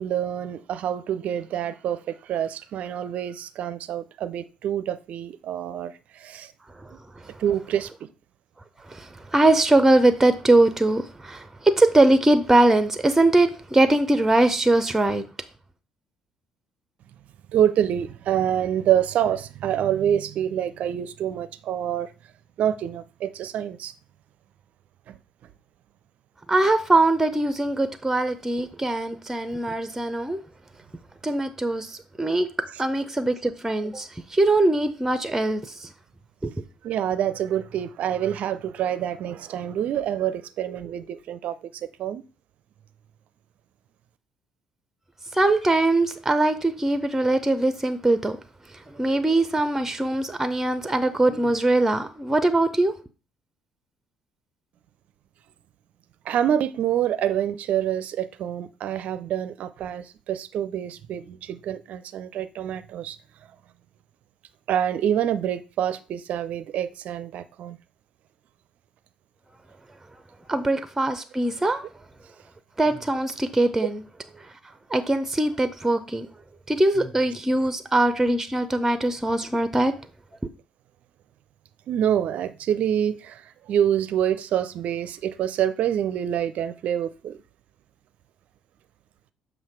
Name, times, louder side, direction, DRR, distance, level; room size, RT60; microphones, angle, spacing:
voice 1, 0.0-6.5 7.4-8.1 17.5-22.1 22.6-23.9 25.1-25.2 36.8-42.2 56.2-63.2 64.7-67.8 81.9-87.4, right 10 dB, 55° right, 0.5 m, -26 dB
voice 2, 8.9-15.2 26.5-30.4 31.2-32.5 32.8-35.9 36.4-36.5 45.3-48.4 48.9-52.9 70.5-71.8 72.8-74.0 74.9-76.3 76.7-79.9, right 2 dB, 10° right, 0.7 m, -21 dB
7.3 x 2.7 x 5.7 m
figure-of-eight pair, 50°, 3 cm